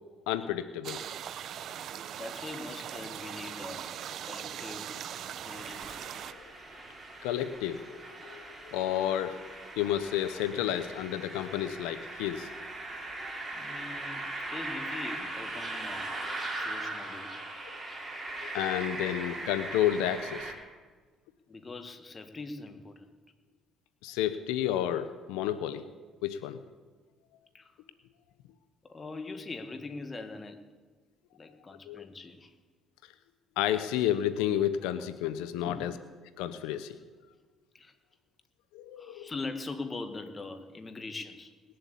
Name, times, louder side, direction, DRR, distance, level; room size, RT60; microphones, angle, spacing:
voice 1, 0.3-1.0 6.3-6.5 7.2-9.4 9.8-12.5 18.4-20.5 24.0-25.9 26.2-26.6 31.9-32.0 33.6-35.9 36.4-37.0 38.7-39.3, left 11 dB, 90° left, 12 dB, 0.7 m, -31 dB
sound 1, 0.8-6.3, right 9 dB, 60° right, 0.7 m, -40 dB
voice 2, 2.2-4.9 5.3-6.1 13.5-14.2 14.5-16.1 16.5-17.4 21.5-23.1 27.5-27.7 28.8-30.7 31.3-32.5 35.6-36.0 37.7-37.9 39.0-41.5, left 3 dB, 30° left, 8 dB, 1.7 m, -42 dB
sound 2, 5.5-20.5, right 2 dB, 20° right, 4.1 m, -39 dB
19.5 x 7.7 x 8.4 m, 1.4 s
supercardioid pair, 85°, 0 cm